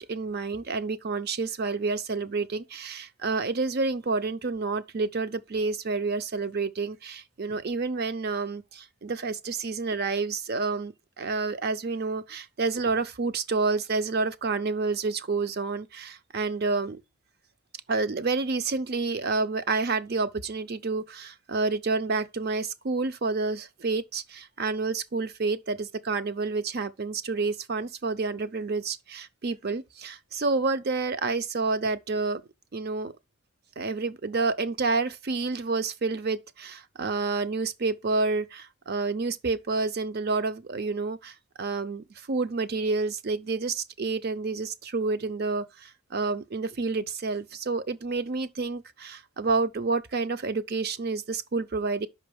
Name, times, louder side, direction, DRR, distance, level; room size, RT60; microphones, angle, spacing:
voice 1, 0.0-17.0 17.9-32.4 32.7-33.1 33.8-52.1, right 3 dB, 50° right, 0.6 m, -29 dB
5.7 x 5.5 x 5.2 m
head